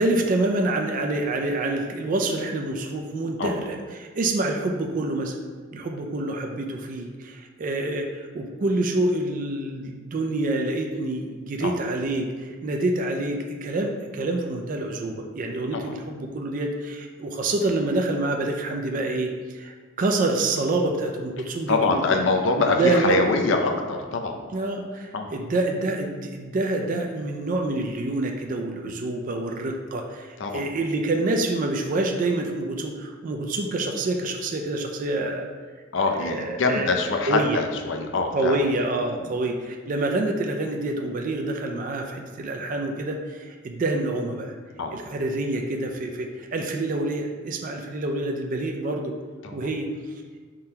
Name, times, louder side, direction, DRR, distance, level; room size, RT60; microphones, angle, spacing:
voice 1, 0.0-5.4 5.7-22.2 22.8-23.2 24.5-35.5 36.2-36.9 37.3-37.6 38.3-44.5 44.9-49.1 49.5-49.9, right 2 dB, 40° right, 3 dB, 0.4 m, -27 dB
voice 2, 21.7-24.4 25.1-25.3 28.8-29.0 30.4-30.6 35.9-38.6 39.2-39.3 44.8-45.0 49.4-49.7, left 3 dB, 65° left, 3 dB, 0.5 m, -24 dB
3.7 x 2.8 x 4.3 m, 1.6 s
head